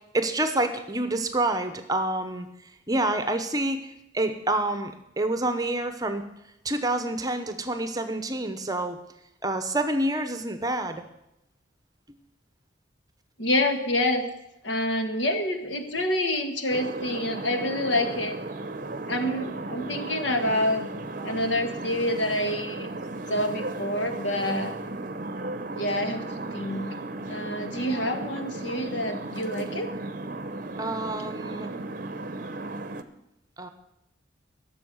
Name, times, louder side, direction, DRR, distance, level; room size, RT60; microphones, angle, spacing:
voice 1, 0.1-6.2 6.6-9.0 9.4-11.0 30.8-31.7 33.6-33.7, right 2 dB, 20° right, 8 dB, 0.9 m, -28 dB
voice 2, 13.4-14.3 14.6-18.4 19.1-20.9 21.2-22.9 23.3-24.7 25.7-26.9 27.2-29.9, left 1 dB, 70° left, 6 dB, 1.7 m, -27 dB
sound 1, 16.7-33.0, right 2 dB, 45° right, 0.8 m, -35 dB
12.0 x 7.0 x 9.5 m, 0.85 s
head